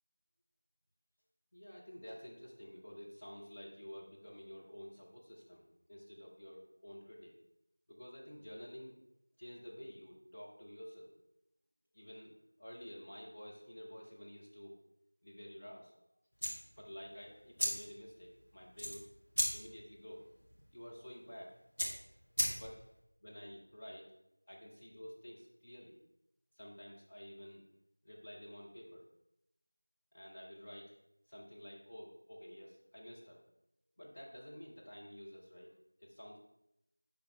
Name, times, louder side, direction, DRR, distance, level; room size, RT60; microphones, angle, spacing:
voice 1, 1.5-7.3 7.9-8.9 9.4-11.2 11.9-12.3 12.6-14.8 15.2-15.9 16.8-19.1 19.5-20.3 20.7-21.6 22.2-22.9 23.2-24.1 24.5-26.0 26.5-27.6 28.0-29.1 30.1-30.9 31.3-33.5 34.0-36.4, equal, 10° left, -6 dB, 0.4 m, -51 dB
sound 1, 16.3-23.0, equal, 45° left, 1.6 m, -39 dB
10.0 x 3.4 x 3.2 m, 0.85 s
figure-of-eight pair, 180°, 0 cm